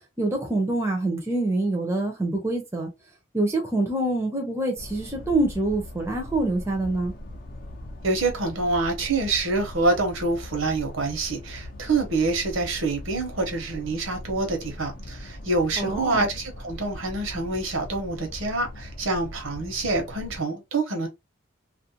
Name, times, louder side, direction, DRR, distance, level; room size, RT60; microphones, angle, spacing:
voice 1, 0.2-2.9 3.3-7.1 15.8-16.3, right 2 dB, 15° right, 0.6 m, -25 dB
sound 1, 4.8-20.4, left 1 dB, 45° left, 0.6 m, -40 dB
voice 2, 8.0-21.1, right 3 dB, 80° right, 0.9 m, -26 dB
2.5 x 2.1 x 2.8 m
head